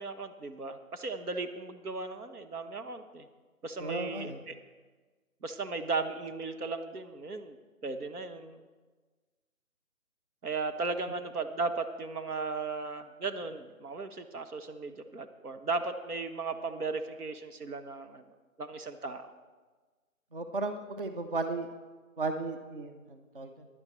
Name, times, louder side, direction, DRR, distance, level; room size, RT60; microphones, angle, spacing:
voice 1, 0.0-3.3 3.6-4.5 5.4-7.6 7.8-8.6 10.4-18.2 18.6-19.3, right 3 dB, 85° right, 8 dB, 1.2 m, -36 dB
voice 2, 3.8-4.4 20.3-21.7 22.2-23.7, right 3 dB, 40° right, 7 dB, 0.6 m, -35 dB
16.0 x 10.5 x 3.1 m, 1.4 s
figure-of-eight pair, 160°, 44 cm